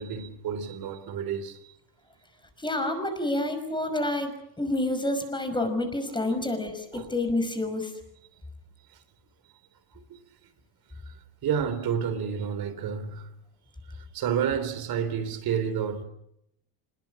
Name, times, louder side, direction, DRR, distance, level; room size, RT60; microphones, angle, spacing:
voice 1, 0.0-1.8 6.2-6.4 6.9-7.1 8.9-9.0 9.9-10.5 11.0-13.3 13.9-16.0, right 8 dB, 55° right, 3.6 m, -31 dB
voice 2, 2.6-7.9, left 1 dB, 10° left, 5.7 m, -28 dB
26.0 x 21.0 x 7.2 m
cardioid pair, 120°, 45 cm